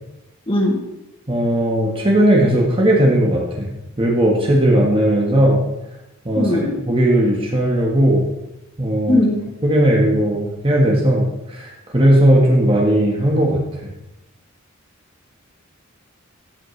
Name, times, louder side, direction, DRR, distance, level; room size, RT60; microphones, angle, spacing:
voice 1, 1.3-3.7 4.0-5.6 6.2-6.5 6.9-8.2 8.8-9.2 9.6-13.6, right 1 dB, 25° right, -2 dB, 1.4 m, -16 dB
voice 2, 6.4-6.7 9.1-9.4, left 1 dB, 25° left, -3 dB, 2.5 m, -18 dB
13.5 x 7.6 x 3.3 m, 0.91 s
head